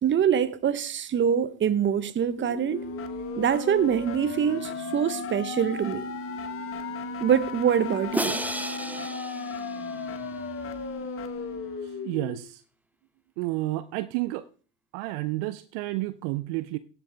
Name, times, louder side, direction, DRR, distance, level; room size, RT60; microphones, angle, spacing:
voice 1, 0.0-2.8 3.4-6.1 7.2-8.4, right 8 dB, 30° right, 1.0 m, -24 dB
sound 1, 2.4-12.4, left 3 dB, 35° left, 1.2 m, -35 dB
Crash cymbal, 8.1-10.3, right 1 dB, 5° right, 0.8 m, -33 dB
voice 2, 11.8-12.6 13.4-14.5 14.9-16.8, right 18 dB, 60° right, 0.6 m, -31 dB
17.0 x 7.8 x 3.5 m
hypercardioid pair, 75°, 40 cm